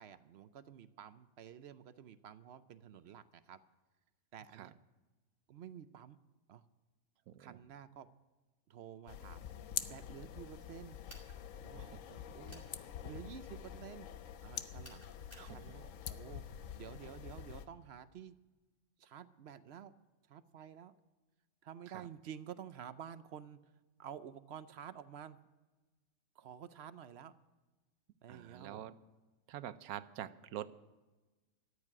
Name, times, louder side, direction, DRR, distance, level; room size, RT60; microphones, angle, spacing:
voice 1, 0.0-3.6 4.3-4.8 5.5-6.2 6.5-6.6 7.4-8.1 8.7-9.5 9.9-11.0 11.6-11.8 12.1-12.7 13.0-14.1 14.4-16.4 16.7-18.4 19.0-19.9 20.3-21.0 21.6-23.7 24.0-25.4 26.3-27.3 28.2-28.8, right 9 dB, 60° right, 13 dB, 0.7 m, -51 dB
voice 2, 7.3-7.6 11.8-12.3 15.3-15.8 21.9-22.1 28.3-29.0 29.5-30.7, right 11 dB, 80° right, 14 dB, 1.1 m, -47 dB
sound 1, 9.1-17.7, left 9 dB, 65° left, 1.0 m, -46 dB
sound 2, 11.1-11.4 12.5-12.7 14.8-15.5, equal, 10° left, 3.1 m, -56 dB
13.5 x 8.3 x 9.7 m, 1.2 s
omnidirectional pair, 1.5 m